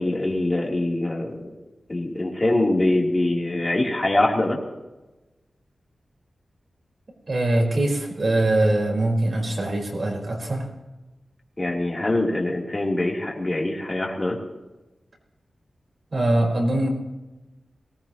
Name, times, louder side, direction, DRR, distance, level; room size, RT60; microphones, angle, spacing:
voice 1, 0.0-1.5 1.9-4.6 11.6-14.4, left 1 dB, 25° left, -2 dB, 3.5 m, -23 dB
voice 2, 7.3-10.7 16.1-16.9, right 1 dB, 45° right, 0 dB, 4.6 m, -22 dB
23.0 x 18.5 x 3.1 m, 1.1 s
wide cardioid pair, 125°, 0 cm